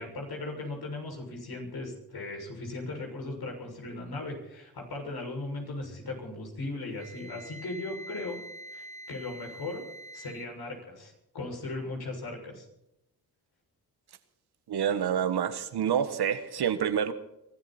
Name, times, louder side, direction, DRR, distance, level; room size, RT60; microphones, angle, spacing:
voice 1, 0.0-8.4 8.7-9.8 10.1-12.7, left 2 dB, 65° left, 7.0 m, -38 dB
Wind instrument woodwind instrument, 7.0-10.5, right 1 dB, 15° right, 1.5 m, -45 dB
voice 2, 14.7-17.1, right 8 dB, 70° right, 1.6 m, -27 dB
23.5 x 13.5 x 4.4 m
cardioid pair, 65°, 40 cm